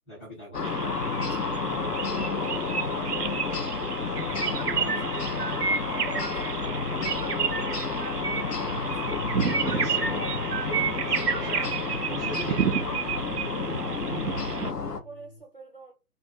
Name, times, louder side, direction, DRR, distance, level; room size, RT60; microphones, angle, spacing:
voice 1, 0.1-0.8 1.6-2.0 4.9-5.1 5.3-5.5 9.6-10.2 10.6-11.7 12.1-13.2, left 1 dB, 10° left, 0.8 m, -40 dB
sound 1, 0.5-15.0, left 4 dB, 90° left, 0.6 m, -31 dB
sound 2, 0.6-14.7, right 6 dB, 90° right, 0.5 m, -31 dB
voice 2, 1.2-3.2 4.3-7.2 9.0-9.2 13.6-15.9, right 2 dB, 40° right, 0.4 m, -46 dB
Bass guitar, 9.1-15.4, left 3 dB, 50° left, 0.7 m, -44 dB
2.3 x 2.2 x 2.9 m
figure-of-eight pair, 140°, 46 cm